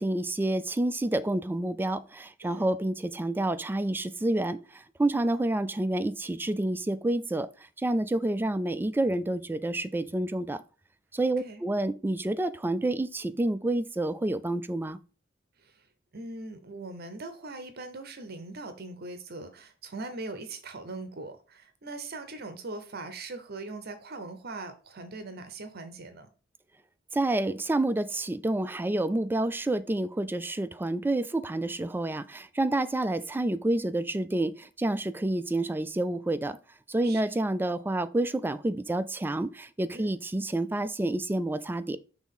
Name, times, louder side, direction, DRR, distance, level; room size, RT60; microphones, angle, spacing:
voice 1, 0.0-7.5 7.8-10.6 11.1-15.0 27.1-36.6 36.9-42.0, right 1 dB, 10° right, 0.3 m, -29 dB
voice 2, 11.2-11.6 15.6-15.8 16.1-26.3 37.0-37.4 39.9-40.1, right 2 dB, 55° right, 0.8 m, -41 dB
6.2 x 3.5 x 5.5 m
head